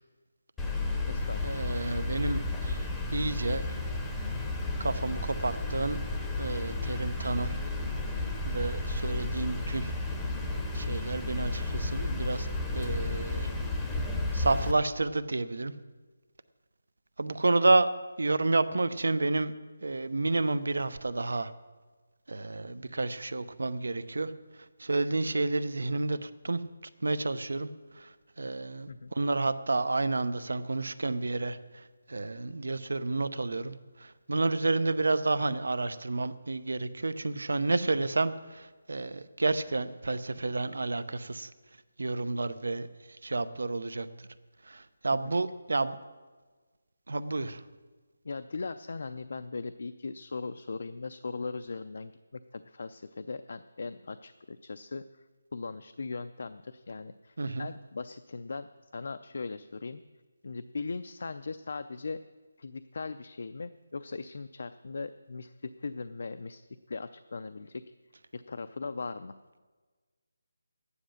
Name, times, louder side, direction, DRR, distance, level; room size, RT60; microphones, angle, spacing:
voice 1, 0.6-1.8 28.9-29.1 45.1-45.3 48.2-55.2 55.5-58.7 58.9-60.0 60.4-62.2 62.6-67.8 68.3-69.3, left 4 dB, 55° left, 10 dB, 0.4 m, -39 dB
sound 1, 0.6-14.7, left 2 dB, 5° left, 0.7 m, -32 dB
voice 2, 1.4-3.8 4.8-6.0 6.4-7.6 8.4-9.9 10.7-12.5 12.7-13.5 14.3-15.7 17.2-17.9 18.2-19.5 19.8-21.5 22.3-24.3 24.8-26.6 27.0-27.7 27.9-41.5 42.0-42.9 43.2-44.3 44.6-46.0 47.1-47.6 57.4-57.7, right 2 dB, 80° right, 13 dB, 0.7 m, -30 dB
11.5 x 9.8 x 6.4 m, 1.4 s
hypercardioid pair, 175°, 0 cm